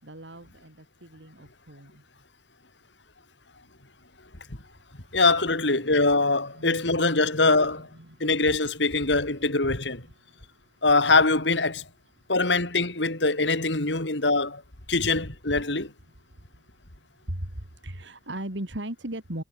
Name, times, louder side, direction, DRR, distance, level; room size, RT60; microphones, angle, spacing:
voice 1, 0.0-2.0 6.6-7.0 7.8-8.3 9.2-9.3 10.3-10.5 17.3-19.4, right 1 dB, 80° right, 4.1 m, -38 dB
voice 2, 5.1-7.9 8.2-10.0 10.8-11.8 12.3-14.6 14.9-15.9, left 3 dB, 75° left, 3.8 m, -23 dB
head